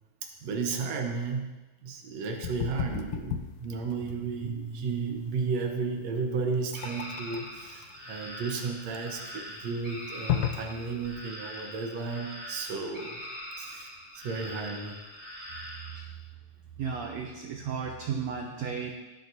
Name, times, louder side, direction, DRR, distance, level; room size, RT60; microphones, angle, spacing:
voice 1, 0.2-13.2 13.6-15.0, right 4 dB, 65° right, 3 dB, 1.8 m, -33 dB
sound 1, 2.4-11.2, left 10 dB, 85° left, 1.7 m, -35 dB
sound 2, 3.7-7.8, right 5 dB, 65° left, 2.6 m, -43 dB
sound 3, 6.7-16.0, equal, 5° left, 3.0 m, -43 dB
voice 2, 16.8-18.9, right 6 dB, 90° right, 2 dB, 1.5 m, -34 dB
16.5 x 9.1 x 2.7 m, 1.1 s
omnidirectional pair, 4.1 m